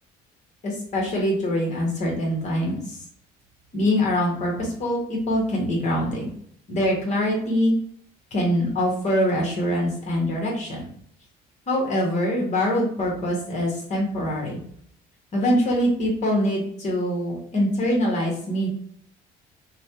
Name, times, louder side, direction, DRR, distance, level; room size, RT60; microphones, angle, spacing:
voice 1, 0.6-3.0 3.7-6.3 6.7-7.7 8.3-10.8 11.7-14.6 15.3-18.7, equal, 45° left, -2 dB, 1.3 m, -24 dB
3.1 x 2.3 x 2.8 m, 0.64 s
cardioid pair, 110°, 17 cm